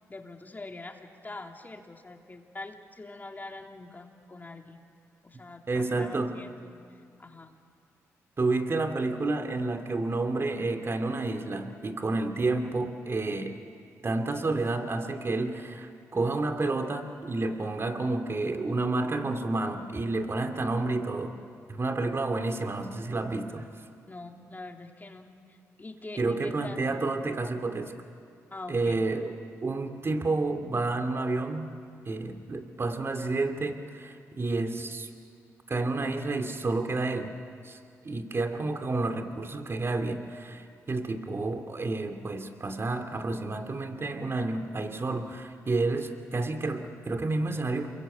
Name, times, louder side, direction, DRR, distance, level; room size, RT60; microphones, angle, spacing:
voice 1, 0.1-4.8 5.2-7.5 16.1-16.4 24.1-27.0 28.5-28.9, left 2 dB, 30° left, 3 dB, 3.1 m, -44 dB
voice 2, 5.7-6.4 8.4-13.6 14.0-21.4 21.7-23.7 26.2-27.9 28.7-31.7 32.1-35.1 35.7-37.3 37.6-37.8 38.0-47.9, right 3 dB, 40° right, 6 dB, 2.6 m, -30 dB
27.5 x 22.5 x 8.7 m, 2.3 s
supercardioid pair, 55°, 6 cm